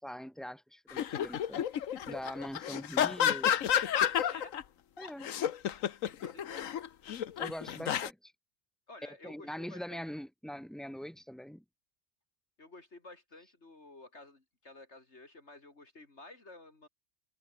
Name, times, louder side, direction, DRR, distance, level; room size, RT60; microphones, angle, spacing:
voice 1, 0.0-1.6 2.1-3.5 4.1-4.3 5.0-5.3 7.4-8.3 9.2-11.6, equal, ahead, 5.3 m, -43 dB
sound 1, 0.9-4.6 5.0-8.1, left 9 dB, 80° left, 1.3 m, -31 dB
voice 2, 6.0-6.7 8.9-10.0 12.6-16.9, left 2 dB, 55° left, 3.4 m, -52 dB
omnidirectional pair, 1.4 m